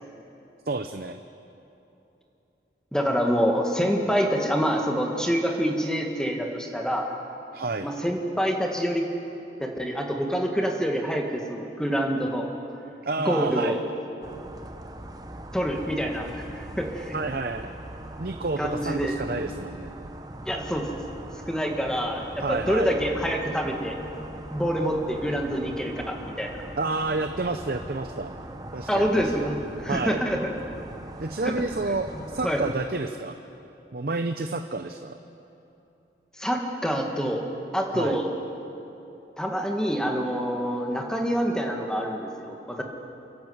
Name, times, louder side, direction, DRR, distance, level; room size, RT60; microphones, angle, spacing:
voice 1, 0.7-1.2 7.5-7.9 13.0-13.8 17.1-17.7 18.2-19.9 22.4-23.0 26.8-28.3 28.7-29.3 29.9-30.2 31.2-33.4 33.9-35.2 37.9-38.2, right 3 dB, 55° right, 7 dB, 0.7 m, -29 dB
voice 2, 2.9-7.1 7.8-9.1 9.6-12.5 13.3-13.8 15.5-17.2 18.6-19.2 20.5-21.2 21.5-24.0 24.5-26.6 28.9-30.5 31.4-31.5 32.4-32.6 36.4-37.5 37.7-38.3 39.4-42.8, equal, 5° left, 1 dB, 1.8 m, -26 dB
sound 1, 14.2-32.7, right 1 dB, 20° right, 1.0 m, -41 dB
28.5 x 12.0 x 8.0 m, 2.9 s
head